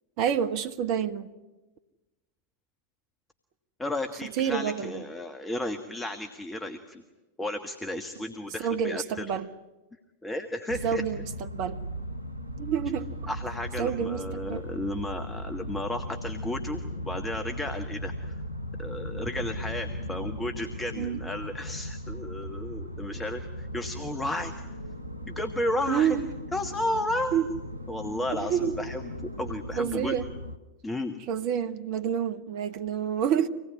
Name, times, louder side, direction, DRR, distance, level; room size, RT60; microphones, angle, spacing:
voice 1, 0.2-1.3 4.4-5.0 8.6-9.5 10.8-11.8 12.6-13.1 13.8-14.6 21.0-21.2 25.9-26.3 27.3-27.5 28.4-28.7 29.8-30.3 31.3-33.5, right 8 dB, 45° right, 1.2 m, -28 dB
voice 2, 3.8-7.0 7.4-9.3 10.2-11.0 13.3-18.4 18.8-24.5 25.3-26.2 26.5-27.3 27.9-30.2 30.8-31.2, left 1 dB, 10° left, 1.5 m, -33 dB
sound 1, 10.7-30.6, equal, 90° left, 0.9 m, -37 dB
25.5 x 19.0 x 9.7 m
figure-of-eight pair, 90°, 0 cm